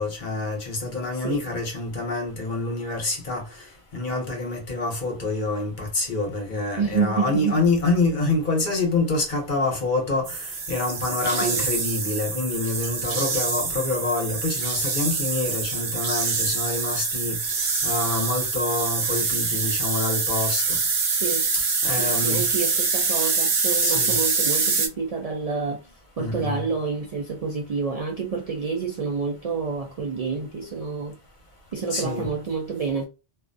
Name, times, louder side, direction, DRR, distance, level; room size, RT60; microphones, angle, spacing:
voice 1, 0.0-3.4 3.9-17.4 17.8-20.8 21.8-22.4 23.8-24.2 26.2-26.7 31.9-32.3, left 2 dB, 50° left, 0.9 m, -26 dB
voice 2, 6.8-7.6 11.4-11.6 21.2-21.5 22.0-25.8 26.2-31.2 31.7-33.1, right 5 dB, 55° right, 0.4 m, -28 dB
sound 1, 10.3-24.9, right 4 dB, 80° right, 0.9 m, -25 dB
2.3 x 2.1 x 2.5 m
omnidirectional pair, 1.1 m